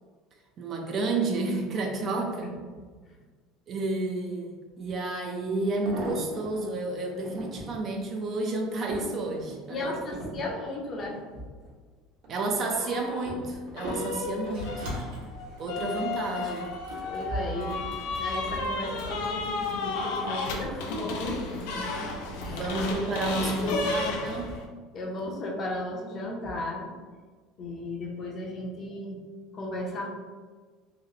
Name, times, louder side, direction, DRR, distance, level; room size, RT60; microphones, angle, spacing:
voice 1, 0.6-2.5 3.7-9.9 10.3-10.4 12.3-14.9 15.6-16.7 22.5-24.5, right 2 dB, 35° right, 2 dB, 0.4 m, -31 dB
sound 1, 4.9-5.0 5.6-6.6 7.1-7.8 8.3-11.7 12.1-12.6 13.3-14.6 15.4-15.7 16.0-16.1, right 1 dB, 55° right, 0.9 m, -40 dB
voice 2, 9.7-11.4 17.1-17.8 18.2-21.9 22.3-22.6 23.4-23.8 24.9-26.9 27.6-29.2 29.5-30.1, left 1 dB, 30° left, -1 dB, 0.6 m, -35 dB
sound 2, 12.7-13.3 13.8-24.7, left 3 dB, 80° left, 0.5 m, -33 dB
Sliding door, 14.5-24.6, left 1 dB, 90° right, 1.1 m, -42 dB
3.0 x 2.9 x 2.8 m, 1.4 s
cardioid pair, 155°, 0 cm